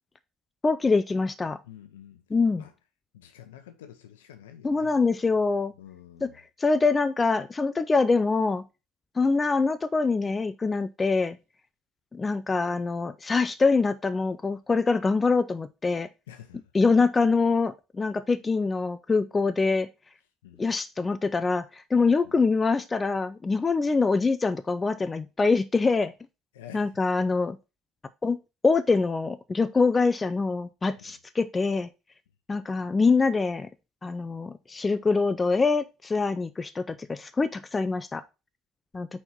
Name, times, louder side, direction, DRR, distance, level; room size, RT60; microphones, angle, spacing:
voice 1, 0.6-1.6 2.3-2.6 4.6-5.7 6.2-6.3 6.6-8.6 9.2-11.4 12.1-16.1 16.7-19.9 20.6-26.1 26.7-27.6 28.2-28.4 28.6-31.9 32.5-33.7 34.0-38.2 38.9-39.1, left 4 dB, 25° left, 0.4 m, -24 dB
voice 2, 1.6-2.2 2.6-2.7 3.1-5.0 5.8-6.4 16.3-16.6 20.4-20.6 22.2-22.4 26.5-26.9 31.0-31.2, left 10 dB, 75° left, 0.8 m, -48 dB
4.4 x 4.4 x 5.8 m
figure-of-eight pair, 60°, 0 cm